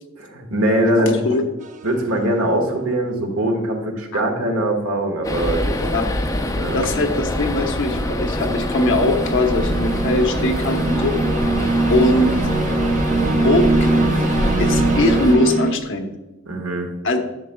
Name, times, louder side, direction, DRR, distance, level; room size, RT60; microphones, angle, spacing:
voice 1, 0.1-1.2 1.8-5.7 6.5-6.8 16.5-16.9, right 1 dB, 70° right, 2 dB, 1.5 m, -21 dB
voice 2, 0.9-1.4 4.1-4.2 5.8-6.0 6.7-11.1 11.9-12.3 13.3-14.1 14.6-16.1 17.0-17.2, left 1 dB, 60° left, 4 dB, 0.9 m, -21 dB
sound 1, 1.6-2.0 7.9-15.7, right 2 dB, 35° right, 0.8 m, -22 dB
sound 2, 5.2-15.4, left 1 dB, 15° left, 0.6 m, -24 dB
10.5 x 7.2 x 2.3 m, 1.1 s
head